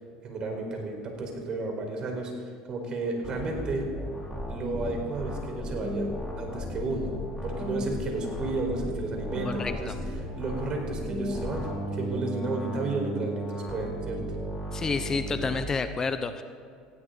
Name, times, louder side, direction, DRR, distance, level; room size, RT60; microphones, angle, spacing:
voice 1, 0.2-3.9 4.5-7.1 7.4-9.9 10.3-14.2 14.8-14.9, right 3 dB, 40° right, 2 dB, 4.5 m, -32 dB
sound 1, 3.2-15.6, equal, 5° left, 4.4 m, -35 dB
voice 2, 9.4-10.0 14.7-16.4, left 4 dB, 25° left, 10 dB, 0.8 m, -30 dB
18.5 x 16.0 x 4.0 m, 2.3 s
supercardioid pair, 95°, 2 cm